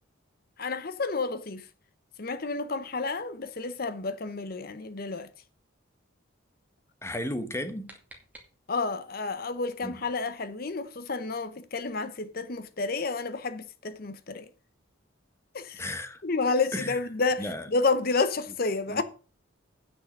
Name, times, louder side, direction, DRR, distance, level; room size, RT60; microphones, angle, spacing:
voice 1, 0.6-1.7 2.2-5.3 8.7-14.5 15.5-15.8 16.2-19.0, left 3 dB, 45° left, 0.8 m, -30 dB
voice 2, 7.0-7.9 9.8-9.9 15.8-16.2 16.7-17.0 17.4-17.6 18.9-19.0, left 1 dB, 15° left, 1.0 m, -34 dB
sound 1, 7.4-9.0, right 1 dB, 10° right, 2.3 m, -54 dB
9.3 x 6.2 x 6.5 m
head